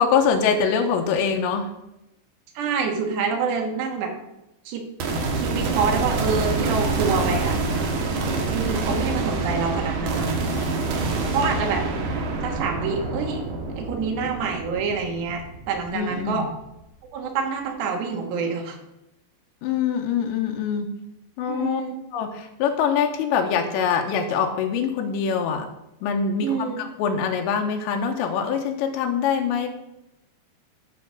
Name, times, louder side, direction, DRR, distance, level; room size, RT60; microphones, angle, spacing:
voice 1, 0.0-1.8 15.9-16.5 19.6-21.0 21.4-21.8 22.1-25.7 26.0-29.7, left 6 dB, 85° left, 3 dB, 3.1 m, -24 dB
voice 2, 2.6-4.1 4.7-4.8 5.4-7.6 8.5-10.3 11.3-11.9 12.4-13.4 13.8-16.5 17.1-18.8 21.5-22.0 26.4-26.8, right 5 dB, 80° right, 2 dB, 3.5 m, -27 dB
sound 1, 5.0-16.3, right 3 dB, 65° right, 2.3 m, -26 dB
12.0 x 4.6 x 6.6 m, 0.91 s
omnidirectional pair, 5.0 m